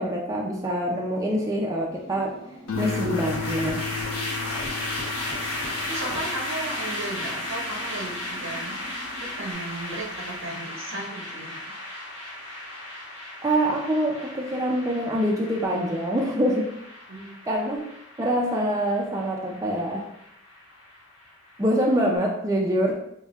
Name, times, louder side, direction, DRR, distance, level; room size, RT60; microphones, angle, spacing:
voice 1, 0.0-3.8 13.4-16.7 17.5-17.9 18.2-20.0 21.6-22.9, right 1 dB, 15° right, -1 dB, 0.4 m, -25 dB
sound 1, 1.9-9.5, right 1 dB, 5° left, 0.7 m, -46 dB
sound 2, 2.7-22.0, left 1 dB, 90° left, 1.0 m, -35 dB
sound 3, 2.7-9.2 9.7-10.1, left 5 dB, 75° left, 0.5 m, -35 dB
voice 2, 5.9-8.8 9.2-11.8 17.1-17.3, right 2 dB, 65° right, -1 dB, 0.9 m, -35 dB
5.3 x 2.1 x 2.4 m, 0.75 s
head